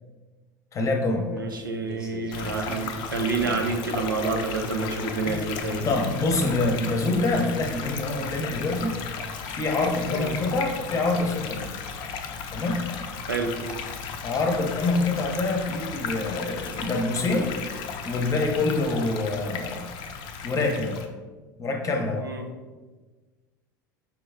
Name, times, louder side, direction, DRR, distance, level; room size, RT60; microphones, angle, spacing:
voice 1, 0.7-1.3 5.8-8.9 9.5-11.7 12.5-12.8 14.2-17.5 18.0-19.9 20.4-21.0 21.6-22.3, left 2 dB, 30° left, 3 dB, 0.8 m, -26 dB
voice 2, 1.3-5.9 10.0-10.3 13.3-13.5 22.2-22.5, right 4 dB, 85° right, 3 dB, 0.5 m, -29 dB
sound 1, 1.4-3.7 4.1-6.0 7.0-7.1 7.5-7.6 7.8-7.9 8.2-8.3 10.2-10.3 10.6-10.7 12.6-12.8 13.5-16.3 16.6-18.2, right 1 dB, 5° right, 1.0 m, -39 dB
sound 2, 2.3-21.1, left 5 dB, 50° left, 0.5 m, -35 dB
4.9 x 3.1 x 3.5 m, 1.3 s
figure-of-eight pair, 75°, 11 cm